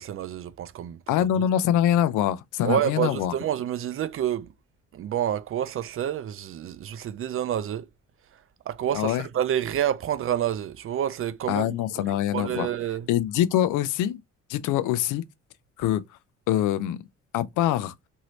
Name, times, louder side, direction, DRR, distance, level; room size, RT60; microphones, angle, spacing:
voice 1, 0.0-1.0 1.4-1.5 2.6-4.5 4.9-7.9 8.7-13.1, right 10 dB, 45° right, 0.4 m, -28 dB
voice 2, 1.1-3.3 8.9-9.2 11.5-12.7 13.1-14.2 14.5-15.2 15.8-16.0 16.5-17.0 17.3-17.9, left 11 dB, 85° left, 0.5 m, -24 dB
3.0 x 2.7 x 2.8 m
cardioid pair, 90°, 30 cm